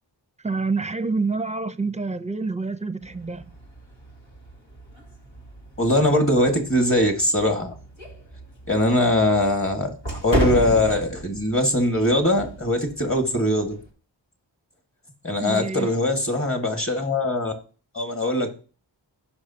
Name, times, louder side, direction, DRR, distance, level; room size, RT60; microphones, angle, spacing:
voice 1, 0.4-3.5 15.4-15.9, right 4 dB, 15° right, 0.7 m, -27 dB
sound 1, 3.0-13.9, equal, 80° left, 2.4 m, -33 dB
voice 2, 5.8-7.8 8.7-13.8 15.2-17.5 17.9-18.5, left 1 dB, 30° left, 2.0 m, -21 dB
16.5 x 5.7 x 2.9 m
wide cardioid pair, 45°, 45 cm